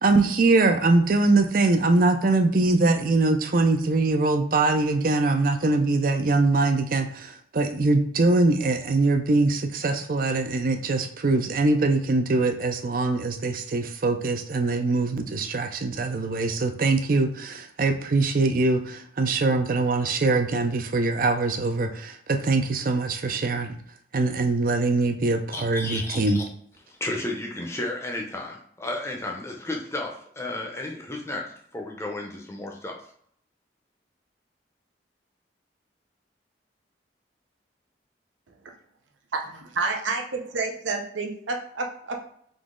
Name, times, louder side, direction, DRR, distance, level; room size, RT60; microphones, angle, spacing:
voice 1, 0.0-23.8 24.1-26.4, right 3 dB, 45° right, 6 dB, 0.4 m, -23 dB
voice 2, 25.5-26.4 26.9-33.0, left 2 dB, 15° left, 1 dB, 0.6 m, -33 dB
voice 3, 39.3-42.2, right 3 dB, 85° right, 3 dB, 0.7 m, -29 dB
3.8 x 3.0 x 3.7 m, 0.65 s
head